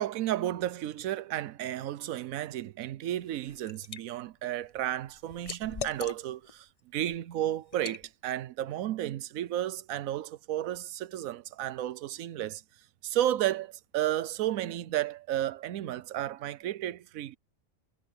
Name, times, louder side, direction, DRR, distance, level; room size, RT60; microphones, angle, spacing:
voice 1, 0.0-12.6 13.0-17.4, right 12 dB, 85° right, 1.1 m, -33 dB
Liquid, 3.2-4.0 4.4-6.5 7.0-7.2 7.7-8.0, left 6 dB, 40° left, 0.5 m, -41 dB
omnidirectional pair, 1.4 m